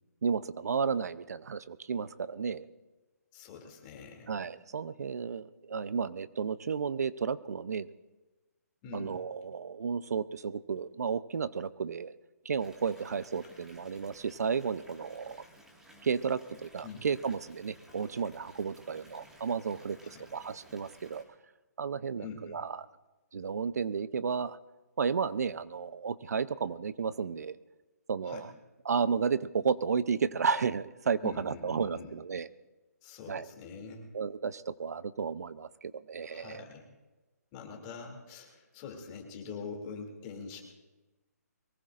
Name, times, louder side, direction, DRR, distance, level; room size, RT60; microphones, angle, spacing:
voice 1, 0.2-2.6 4.3-7.9 8.9-12.1 12.4-15.4 16.0-21.2 21.8-22.9 23.3-24.6 25.0-27.6 28.1-28.5 28.8-32.5 33.3-33.5 34.1-36.7, right 6 dB, 70° right, 16 dB, 0.6 m, -33 dB
voice 2, 3.3-4.3 8.8-9.1 16.8-17.0 20.0-20.2 22.2-22.6 28.2-28.4 31.2-32.1 33.0-34.1 36.2-36.8 37.5-40.6, left 5 dB, 25° left, 2 dB, 2.6 m, -44 dB
Water tap faucet / Bathtub (filling or washing) / Fill (with liquid), 12.6-21.2, equal, 5° right, 1.8 m, -56 dB
23.0 x 19.5 x 2.5 m, 1.2 s
hypercardioid pair, 155°, 9 cm